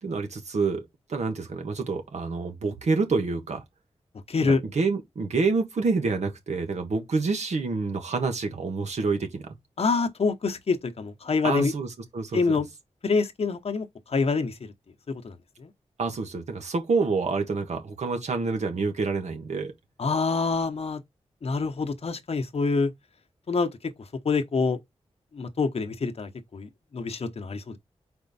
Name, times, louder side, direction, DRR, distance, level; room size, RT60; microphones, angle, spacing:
voice 1, 0.0-3.6 4.4-9.5 11.4-12.5 16.0-19.7, right 4 dB, 80° right, 1.5 m, -27 dB
voice 2, 4.3-4.6 9.8-11.7 12.3-12.7 13.0-14.7 15.2-15.7 20.0-21.0 21.4-22.9 23.5-23.7 24.2-24.8 25.3-27.8, left 4 dB, 60° left, 1.0 m, -26 dB
5.1 x 4.4 x 4.1 m
wide cardioid pair, 80°, 12 cm